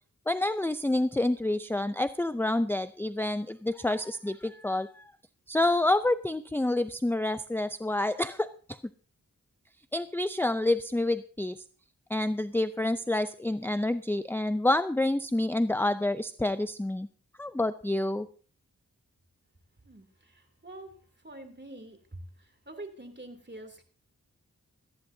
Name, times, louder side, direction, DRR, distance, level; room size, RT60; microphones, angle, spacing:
voice 1, 0.3-5.1 5.5-8.5 9.9-11.5 12.1-17.1 17.4-18.3, left 1 dB, 5° left, 12 dB, 0.5 m, -28 dB
voice 2, 21.2-22.0 22.7-23.8, right 2 dB, 30° right, 6 dB, 2.9 m, -44 dB
18.0 x 14.0 x 2.7 m, 0.40 s
cardioid pair, 50°, 34 cm